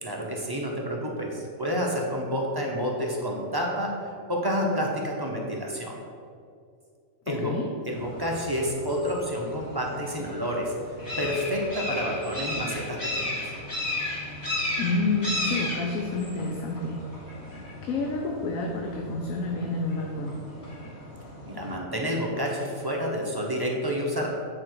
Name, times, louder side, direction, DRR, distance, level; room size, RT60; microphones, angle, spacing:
voice 1, 0.0-3.9 4.3-6.0 7.3-7.5 7.8-10.7 11.2-13.3 21.4-24.3, equal, 20° right, -2 dB, 0.8 m, -29 dB
voice 2, 7.3-7.7 14.8-17.0 17.8-20.3, left 3 dB, 80° left, 1 dB, 1.1 m, -29 dB
sound 1, 7.9-21.7, left 1 dB, 30° left, 2.3 m, -35 dB
8.6 x 4.8 x 4.6 m, 2.3 s
omnidirectional pair, 1.4 m